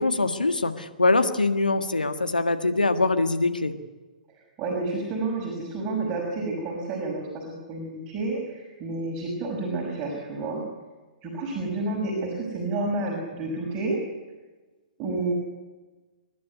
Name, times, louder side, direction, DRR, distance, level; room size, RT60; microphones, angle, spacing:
voice 1, 0.0-3.7, left 3 dB, 85° left, 8 dB, 1.7 m, -23 dB
voice 2, 4.3-10.6 11.2-14.0 15.0-15.3, right 2 dB, 25° right, -2 dB, 6.0 m, -30 dB
27.5 x 12.0 x 9.7 m, 1.3 s
figure-of-eight pair, 120°, 5 cm